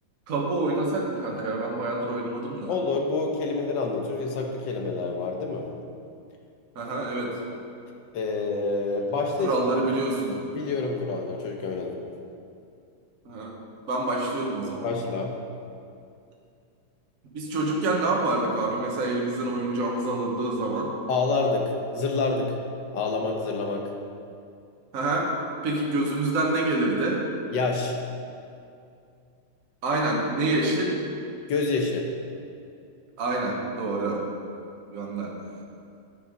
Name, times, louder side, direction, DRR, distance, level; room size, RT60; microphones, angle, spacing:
voice 1, 0.3-2.8 6.7-7.3 9.4-10.5 13.2-13.5 13.9-14.9 17.3-20.9 24.9-25.3 25.6-27.2 29.8-31.0 33.2-34.2 34.9-35.3, right 2 dB, 45° right, -1 dB, 1.4 m, -27 dB
voice 2, 2.7-5.7 8.1-9.8 10.5-12.0 14.8-15.4 21.1-22.6 22.9-23.9 27.5-28.0 31.5-32.1, left 3 dB, 65° left, 2 dB, 1.6 m, -27 dB
9.9 x 6.8 x 5.1 m, 2.5 s
omnidirectional pair, 2.3 m